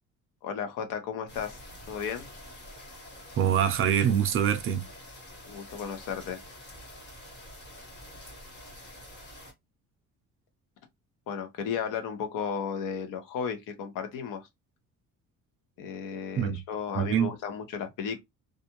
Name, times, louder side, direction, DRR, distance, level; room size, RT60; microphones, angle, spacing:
voice 1, 0.4-1.6 1.9-2.3 5.4-6.4 11.3-14.5 15.8-18.2, left 7 dB, 85° left, 0.8 m, -34 dB
sound 1, 1.3-9.5, left 1 dB, 35° left, 1.3 m, -47 dB
voice 2, 3.4-4.8 16.4-16.6 17.0-17.3, right 9 dB, 40° right, 0.4 m, -24 dB
2.5 x 2.3 x 2.8 m
cardioid pair, 165°, 32 cm